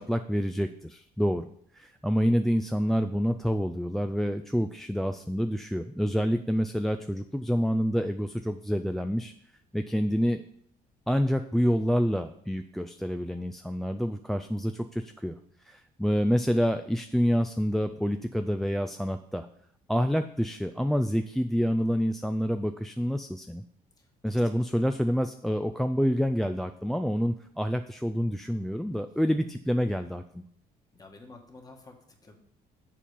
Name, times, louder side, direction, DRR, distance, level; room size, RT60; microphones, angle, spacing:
voice 1, 0.0-9.3 9.7-10.4 11.1-15.4 15.7-19.5 19.9-23.6 24.2-30.4, equal, ahead, 7 dB, 0.3 m, -27 dB
voice 2, 24.0-24.5 30.9-32.3, left 3 dB, 20° left, 3 dB, 1.6 m, -51 dB
7.3 x 4.4 x 6.9 m, 0.65 s
cardioid pair, 110°, 17 cm